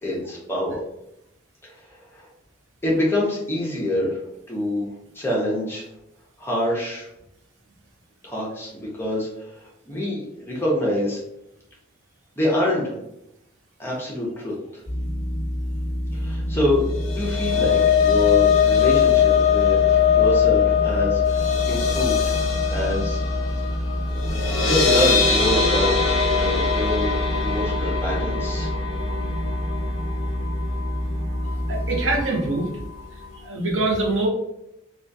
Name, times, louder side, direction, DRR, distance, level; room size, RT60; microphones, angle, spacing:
voice 1, 0.0-0.8 1.6-2.3 2.8-4.2 4.5-4.9 5.1-5.9 6.4-7.1 8.2-11.2 12.4-13.0 13.8-14.5 16.1-22.2 22.7-23.3 24.6-26.0 26.4-27.1 27.4-28.7, left 1 dB, 10° left, -5 dB, 0.5 m, -26 dB
sound 1, 14.9-32.2, equal, 45° right, 1.3 m, -27 dB
sound 2, 16.9-31.1 31.5-31.7 32.0-32.1, left 7 dB, 70° left, 0.4 m, -21 dB
voice 2, 31.7-32.7 33.4-34.3, right 2 dB, 70° right, -1 dB, 0.6 m, -23 dB
2.3 x 2.2 x 2.5 m, 0.83 s
head